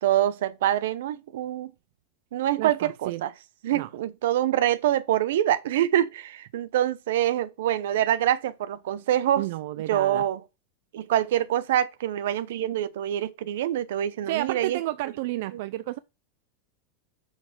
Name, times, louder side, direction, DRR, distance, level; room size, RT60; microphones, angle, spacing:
voice 1, 0.0-1.7 2.3-3.3 3.6-9.5 9.9-10.4 10.9-14.8, right 12 dB, 75° right, 0.7 m, -25 dB
voice 2, 2.6-3.2 3.7-3.9 9.4-10.3 14.3-16.0, right 17 dB, 55° right, 0.4 m, -31 dB
6.4 x 6.0 x 4.7 m
supercardioid pair, 170°, 0 cm